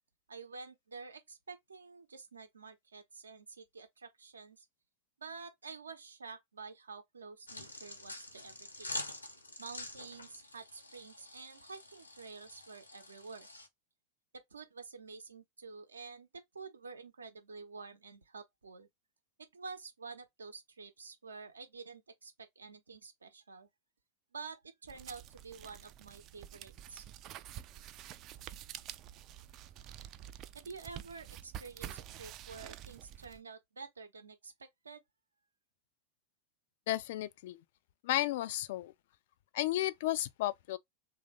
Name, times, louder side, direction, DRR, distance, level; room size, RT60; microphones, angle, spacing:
voice 1, 0.3-4.7 5.2-9.0 9.6-13.5 14.3-18.9 19.4-23.7 24.3-27.1 30.5-35.0, right 4 dB, 75° right, 0.7 m, -49 dB
sound 1, 7.5-13.7, left 2 dB, 80° left, 0.8 m, -46 dB
sound 2, 24.9-33.4, right 11 dB, 35° right, 0.3 m, -48 dB
voice 2, 36.9-37.6 38.0-38.9 39.5-40.8, left 14 dB, 55° left, 0.3 m, -33 dB
3.1 x 2.5 x 3.6 m
figure-of-eight pair, 90°, 0 cm